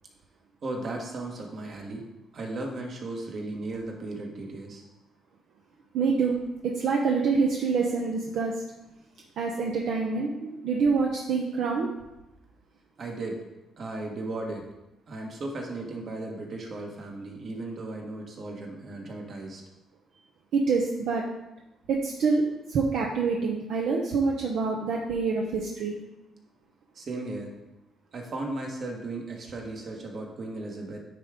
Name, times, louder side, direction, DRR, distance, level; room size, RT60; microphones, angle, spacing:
voice 1, 0.6-2.1 2.3-4.8 13.0-13.4 13.8-14.7 15.1-19.6 26.9-27.6 28.1-31.0, right 2 dB, 55° right, 1 dB, 1.4 m, -36 dB
voice 2, 5.9-6.4 6.6-8.5 9.4-11.9 20.5-21.3 21.9-22.4 22.7-26.0, right 4 dB, 75° right, -1 dB, 0.7 m, -26 dB
9.3 x 3.6 x 3.7 m, 0.96 s
cardioid pair, 90°, 0 cm